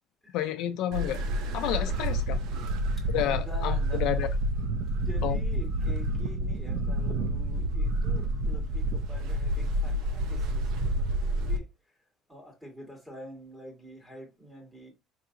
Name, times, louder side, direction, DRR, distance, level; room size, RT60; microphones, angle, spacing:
voice 1, 0.3-1.2 1.5-2.4 3.1-4.3 5.2-5.4, left 12 dB, 70° left, 0.5 m, -30 dB
sound 1, 0.9-11.6, right 1 dB, 70° right, 0.6 m, -29 dB
voice 2, 3.1-4.0 4.9-11.7 12.3-14.9, equal, 5° right, 1.5 m, -46 dB
4.6 x 2.8 x 2.6 m
cardioid pair, 165°, 0 cm